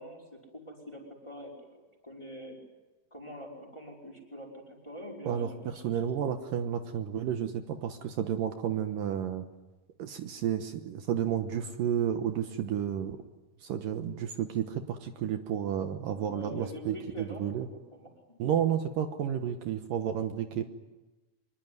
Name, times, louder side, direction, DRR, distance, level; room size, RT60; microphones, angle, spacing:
voice 1, 0.0-2.6 3.1-5.8 16.0-18.1, equal, 5° left, 0 dB, 4.9 m, -45 dB
voice 2, 5.2-9.5 10.0-13.2 13.6-17.7 18.4-20.6, right 9 dB, 70° right, 7 dB, 2.7 m, -31 dB
25.0 x 22.0 x 9.6 m, 1.1 s
omnidirectional pair, 4.2 m